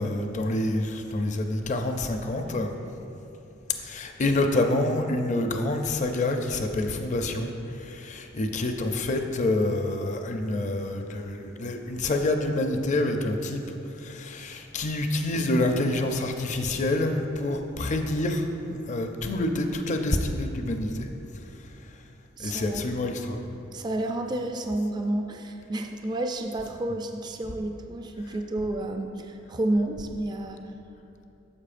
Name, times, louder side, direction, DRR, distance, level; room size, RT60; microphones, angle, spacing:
voice 1, 0.0-2.7 3.8-13.6 13.9-21.1 22.4-23.5, left 2 dB, 40° left, 5 dB, 0.5 m, -27 dB
voice 2, 22.4-22.8 23.7-30.6, right 1 dB, 20° right, 4 dB, 0.3 m, -30 dB
9.8 x 6.9 x 2.5 m, 2.8 s
head